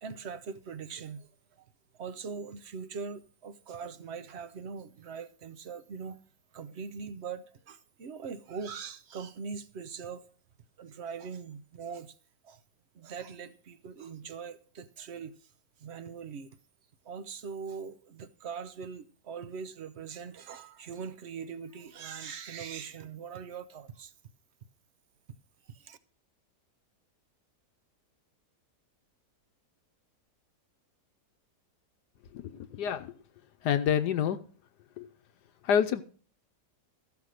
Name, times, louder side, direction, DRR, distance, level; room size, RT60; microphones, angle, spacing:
voice 1, 0.0-6.2 6.5-10.3 10.8-12.2 12.4-12.6 12.9-15.5 15.8-16.5 17.0-24.1 25.6-26.0, right 6 dB, 50° right, 0.9 m, -42 dB
voice 2, 32.3-33.1 33.6-34.4 35.0-35.1 35.6-36.0, left 8 dB, 75° left, 1.2 m, -28 dB
14.0 x 5.9 x 6.4 m
omnidirectional pair, 1.8 m